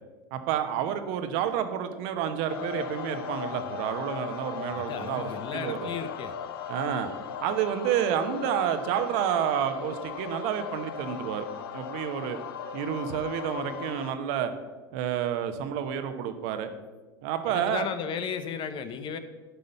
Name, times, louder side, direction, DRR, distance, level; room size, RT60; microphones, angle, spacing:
voice 1, 0.3-5.9 6.7-7.1 7.4-11.5 11.7-12.4 12.7-14.5 14.9-16.7 17.2-17.9, right 9 dB, 60° right, 8 dB, 1.0 m, -29 dB
sound 1, 2.5-14.1, left 7 dB, 75° left, 0.7 m, -37 dB
voice 2, 4.7-6.3 17.5-19.2, left 7 dB, 40° left, 10 dB, 0.9 m, -35 dB
11.5 x 5.3 x 5.4 m, 1.3 s
hypercardioid pair, 85°, 12 cm